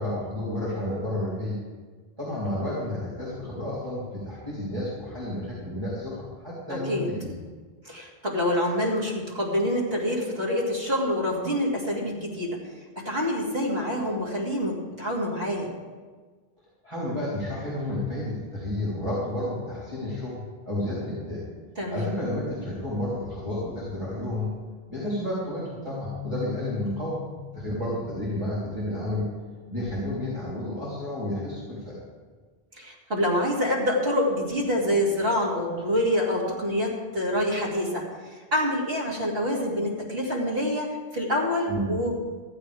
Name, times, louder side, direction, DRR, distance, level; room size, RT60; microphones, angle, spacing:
voice 1, 0.0-1.6 2.2-7.3 16.8-21.4 21.9-24.5 24.9-27.2 27.5-29.3 29.7-32.0 41.7-42.0, left 1 dB, 30° right, -10 dB, 3.6 m, -31 dB
voice 2, 6.7-7.1 7.8-12.6 13.0-15.7 21.8-22.1 32.8-42.1, left 1 dB, 70° right, -4 dB, 3.0 m, -26 dB
Keyboard (musical), 25.9-28.8, left 7 dB, 50° right, 3.0 m, -39 dB
15.0 x 14.5 x 3.5 m, 1.4 s
omnidirectional pair, 1.0 m